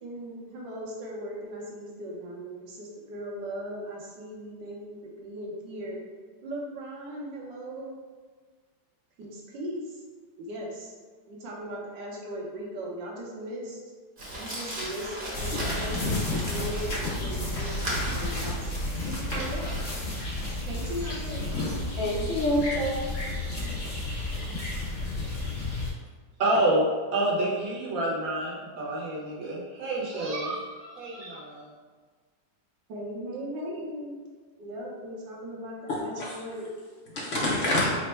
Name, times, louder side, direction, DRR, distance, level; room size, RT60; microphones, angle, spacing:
voice 1, 0.0-6.0 6.4-7.9 9.2-10.0 10.4-10.9 11.3-13.8 14.3-18.5 19.0-19.8 20.7-21.5 32.9-34.2 34.6-36.7 37.3-37.9, equal, 80° right, -3 dB, 1.6 m, -38 dB
Crumpling crinkling, 14.2-21.8, equal, 35° right, 1.0 m, -38 dB
sound 1, 15.3-25.9, left 2 dB, 40° left, 1.1 m, -32 dB
voice 2, 22.0-23.0 35.9-36.3 37.1-37.9, left 1 dB, 65° left, -4 dB, 0.7 m, -27 dB
voice 3, 26.4-31.7, right 1 dB, 55° right, -5 dB, 1.3 m, -28 dB
4.3 x 2.1 x 4.3 m, 1.5 s
omnidirectional pair, 1.9 m